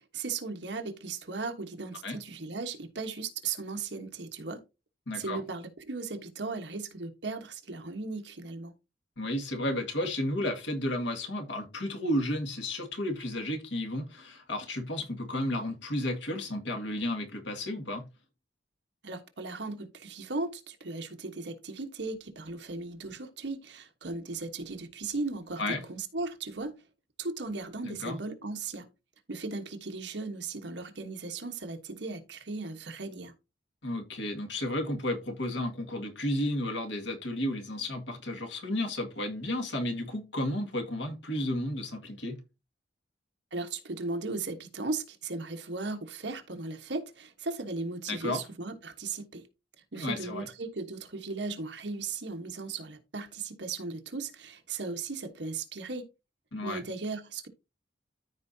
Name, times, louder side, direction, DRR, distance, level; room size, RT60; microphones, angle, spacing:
voice 1, 0.0-4.6 5.1-8.7 19.0-26.7 27.2-28.9 29.3-33.3 43.5-49.5 49.9-56.1 56.6-57.5, right 3 dB, 75° right, 1.3 m, -37 dB
voice 2, 5.1-5.4 9.2-18.0 25.6-25.8 27.8-28.2 33.8-42.4 48.1-48.4 50.0-50.5 56.5-56.8, left 1 dB, 90° left, 2.0 m, -32 dB
13.5 x 4.6 x 2.7 m
head